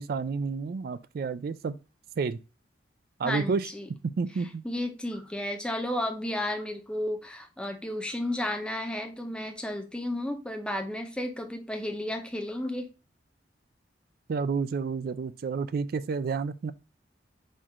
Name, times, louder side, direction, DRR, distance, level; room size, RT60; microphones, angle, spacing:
voice 1, 0.0-1.7 2.2-2.4 3.2-3.7 4.1-4.6 14.3-16.7, right 5 dB, 50° right, 0.3 m, -30 dB
voice 2, 3.2-3.9 4.6-12.9, left 1 dB, 5° left, 0.6 m, -33 dB
4.3 x 2.4 x 4.6 m
head